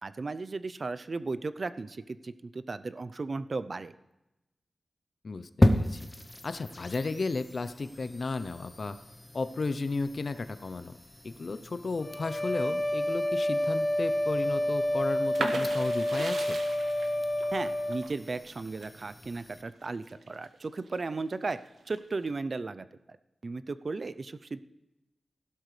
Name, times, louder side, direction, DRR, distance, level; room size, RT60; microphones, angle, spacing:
voice 1, 0.0-3.9 17.5-21.6 21.9-22.9 23.4-24.6, right 3 dB, 45° right, 14 dB, 0.5 m, -35 dB
voice 2, 5.2-6.0 6.4-9.0 9.3-10.9 11.2-16.6, left 3 dB, 55° left, 11 dB, 0.6 m, -34 dB
sound 1, 5.6-19.6, left 1 dB, 15° left, 0.8 m, -35 dB
sound 2, 12.0-18.1, left 1 dB, 30° left, 1.2 m, -29 dB
sound 3, 15.3-21.0 21.4-22.3, right 3 dB, 85° right, 1.2 m, -38 dB
15.5 x 11.5 x 3.2 m, 0.95 s
wide cardioid pair, 100°, 0 cm